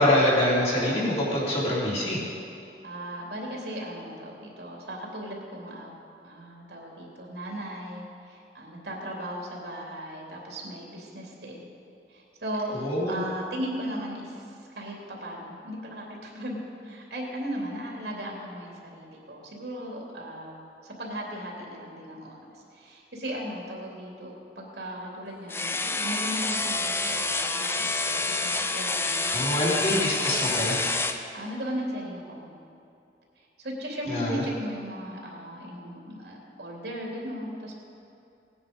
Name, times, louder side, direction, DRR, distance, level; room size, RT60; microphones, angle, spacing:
voice 1, 0.0-2.2 12.7-13.2 29.3-30.8 34.1-34.4, left 1 dB, 35° left, -7 dB, 3.8 m, -25 dB
voice 2, 2.8-5.9 6.2-11.6 12.1-12.8 13.0-29.3 30.4-30.8 31.3-32.5 33.4-37.7, equal, 70° right, -2 dB, 3.0 m, -37 dB
sound 1, 25.5-31.2, left 3 dB, 15° left, 0.5 m, -28 dB
18.0 x 9.8 x 5.3 m, 2.6 s
head